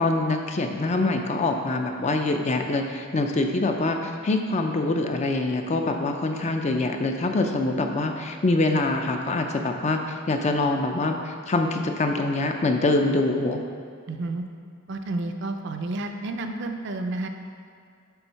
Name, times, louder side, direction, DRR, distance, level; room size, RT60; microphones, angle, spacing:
voice 1, 0.0-10.0 10.3-13.6, left 2 dB, 35° left, 4 dB, 0.4 m, -24 dB
voice 2, 14.1-14.4 14.9-17.3, right 2 dB, 55° right, 6 dB, 0.5 m, -30 dB
7.0 x 3.8 x 5.6 m, 2.3 s
head